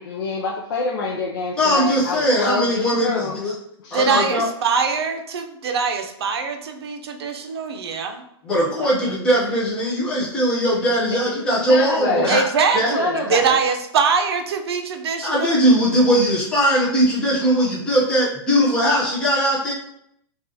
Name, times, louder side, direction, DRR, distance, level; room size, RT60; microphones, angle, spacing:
voice 1, 0.0-3.4 3.8-4.4 11.0-12.3 12.8-13.6, left 3 dB, 50° left, -1 dB, 0.5 m, -26 dB
voice 2, 1.6-3.5 3.9-4.5 8.4-12.4 12.7-12.9 15.2-19.7, equal, 5° left, -8 dB, 0.6 m, -20 dB
voice 3, 3.9-8.2 12.3-15.6, right 5 dB, 70° right, 5 dB, 0.6 m, -22 dB
5.4 x 2.4 x 2.8 m, 0.76 s
hypercardioid pair, 175°, 14 cm